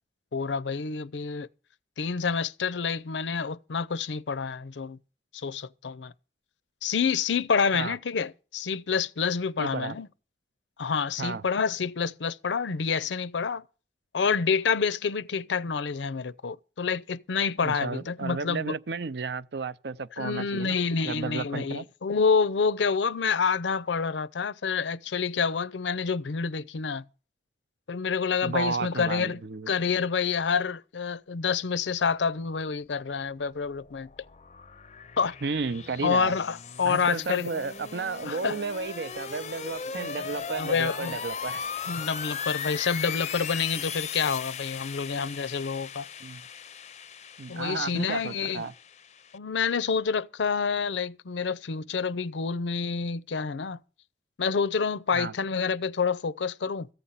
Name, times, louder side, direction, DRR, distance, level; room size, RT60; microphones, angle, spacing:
voice 1, 0.3-1.5 2.0-5.0 5.3-6.1 6.8-10.1 10.8-13.6 14.1-18.8 20.2-27.0 27.9-29.4 29.7-34.1 35.2-35.4 36.0-37.5 38.2-38.6 40.0-40.1 40.6-41.2 41.9-46.1 47.5-48.7 49.3-53.8 54.4-56.9, left 5 dB, 90° left, 0.6 m, -28 dB
voice 2, 9.6-10.0 11.2-11.5 17.6-20.8 21.0-21.8 28.4-29.7 35.4-36.4 36.8-41.6 46.2-46.4 47.4-48.7 55.1-55.3, right 4 dB, 70° right, 0.5 m, -33 dB
sound 1, 33.5-49.4, left 7 dB, 40° left, 0.5 m, -38 dB
14.5 x 8.9 x 5.6 m
head